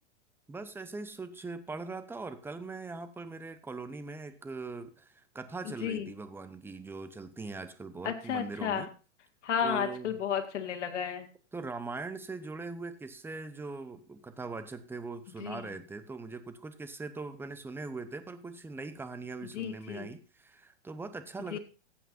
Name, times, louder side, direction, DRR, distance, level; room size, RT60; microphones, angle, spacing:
voice 1, 0.5-8.9 9.6-10.1 11.5-21.6, right 3 dB, 5° right, 11 dB, 0.7 m, -41 dB
voice 2, 5.7-6.1 8.0-8.9 9.4-11.3 15.4-15.7 19.5-20.1 21.5-21.6, left 8 dB, 75° left, 5 dB, 2.1 m, -33 dB
15.0 x 8.6 x 2.6 m, 0.34 s
hypercardioid pair, 125°, 36 cm